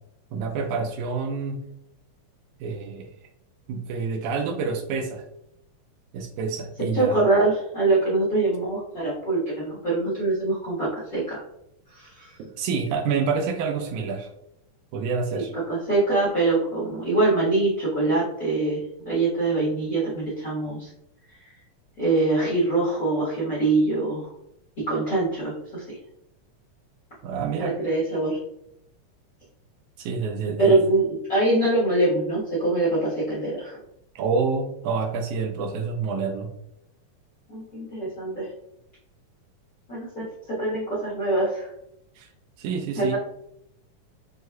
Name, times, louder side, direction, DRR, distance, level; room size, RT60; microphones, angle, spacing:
voice 1, 0.3-1.6 2.6-3.1 3.7-5.2 6.1-7.2 12.4-14.3 14.9-15.5 27.2-27.8 30.0-30.8 34.2-36.5 42.2-42.3 42.6-43.2, right 5 dB, 80° right, 4 dB, 1.9 m, -28 dB
voice 2, 6.9-11.4 11.9-12.3 15.3-15.4 15.7-20.9 22.0-24.3 24.9-25.8 27.6-28.4 30.6-33.8 37.5-38.5 39.9-41.7 43.0-43.2, right 2 dB, 50° left, -8 dB, 1.1 m, -24 dB
6.2 x 2.7 x 2.3 m, 0.78 s
omnidirectional pair, 3.6 m